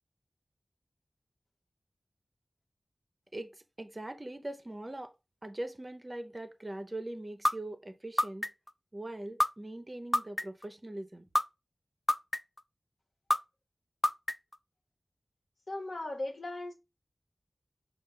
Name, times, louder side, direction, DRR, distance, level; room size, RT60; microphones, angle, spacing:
voice 1, 3.3-5.1 5.4-8.5 8.9-11.3, right 1 dB, 35° right, 0.7 m, -41 dB
sound 1, 7.4-7.5 8.2-8.7 9.4-9.5 10.1-10.6 11.3-11.4 12.1-12.6 13.3-13.4 14.0-14.5, left 1 dB, 20° left, 0.3 m, -26 dB
voice 2, 15.7-16.7, left 2 dB, 85° left, 1.2 m, -37 dB
5.2 x 2.4 x 3.6 m
wide cardioid pair, 55°, 0 cm